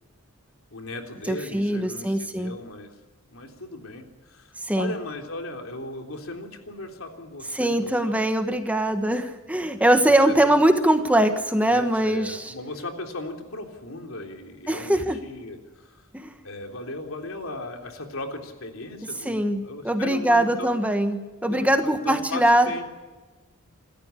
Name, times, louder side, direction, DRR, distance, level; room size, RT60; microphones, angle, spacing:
voice 1, 0.7-2.9 3.3-8.2 10.0-10.6 11.7-16.0 16.4-20.8 21.4-22.9, left 2 dB, 70° left, 4 dB, 3.4 m, -37 dB
voice 2, 1.3-2.6 4.6-4.9 7.5-12.5 14.7-15.2 16.1-16.4 19.2-22.7, right 1 dB, 5° right, 7 dB, 1.3 m, -22 dB
27.5 x 14.0 x 8.5 m, 1.3 s
head